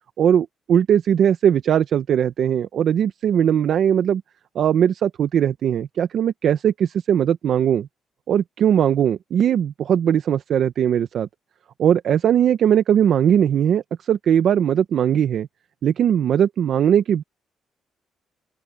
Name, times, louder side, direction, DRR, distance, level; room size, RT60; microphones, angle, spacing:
voice 1, 0.2-4.2 4.5-7.9 8.3-11.3 11.8-15.5 15.8-17.2, right 9 dB, 65° right, 0.9 m, -19 dB
open air
cardioid pair, 90°, 0 cm